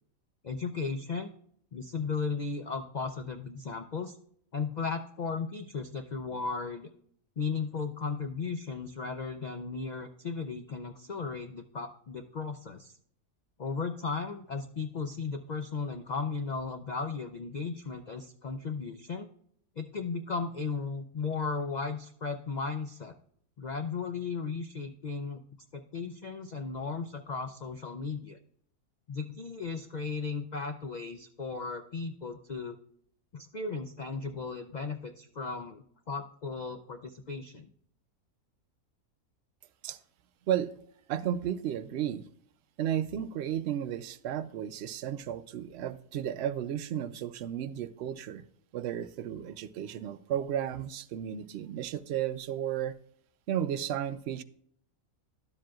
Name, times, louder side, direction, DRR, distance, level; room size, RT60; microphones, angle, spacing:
voice 1, 0.4-1.3 1.7-4.2 4.5-6.9 7.4-12.9 13.6-19.3 19.8-23.1 23.6-25.4 25.7-28.4 29.1-32.8 33.3-37.7, left 4 dB, 85° left, 0.3 m, -35 dB
voice 2, 41.1-42.3 42.8-48.4 48.7-53.0 53.5-54.4, right 10 dB, 65° right, 0.7 m, -33 dB
12.0 x 7.6 x 2.3 m
omnidirectional pair, 1.5 m